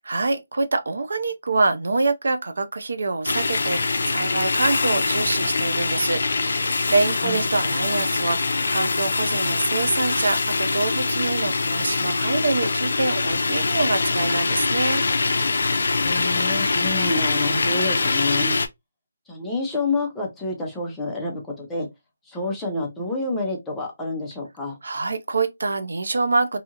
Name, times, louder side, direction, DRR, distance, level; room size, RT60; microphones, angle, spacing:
voice 1, 0.1-15.0 24.8-26.6, right 3 dB, 75° right, 0.5 m, -25 dB
sound 1, 3.3-18.7, left 3 dB, 65° left, 0.4 m, -23 dB
voice 2, 16.0-18.6 19.3-21.9 22.3-24.8, left 2 dB, 5° left, 0.5 m, -28 dB
2.7 x 2.4 x 2.7 m
hypercardioid pair, 175°, 0 cm